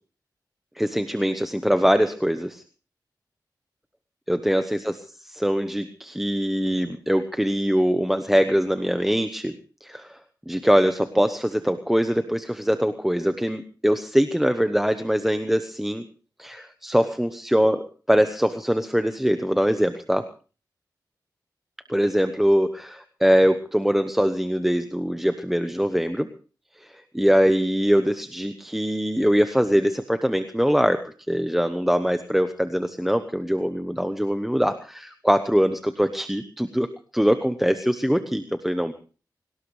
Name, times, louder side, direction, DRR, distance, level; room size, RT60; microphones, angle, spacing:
voice 1, 0.8-2.6 4.3-5.0 5.3-9.5 9.8-10.2 10.5-16.0 16.4-20.3 21.9-26.3 26.8-36.9 37.1-38.9, equal, 5° right, 9 dB, 1.0 m, -22 dB
22.5 x 18.5 x 3.3 m, 0.38 s
wide cardioid pair, 120°, 7 cm